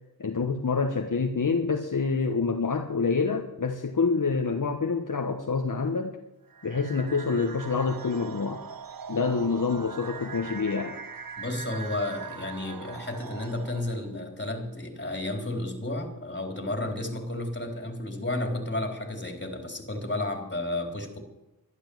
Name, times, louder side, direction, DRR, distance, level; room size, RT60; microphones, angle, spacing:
voice 1, 0.2-6.2 6.6-8.6 9.1-11.0, left 4 dB, 55° left, 4 dB, 1.3 m, -27 dB
sound 1, 6.5-14.1, right 6 dB, 65° right, 0.9 m, -41 dB
voice 2, 11.4-21.2, left 1 dB, 30° left, 3 dB, 3.7 m, -32 dB
12.0 x 11.5 x 7.9 m, 0.95 s
wide cardioid pair, 55°, 37 cm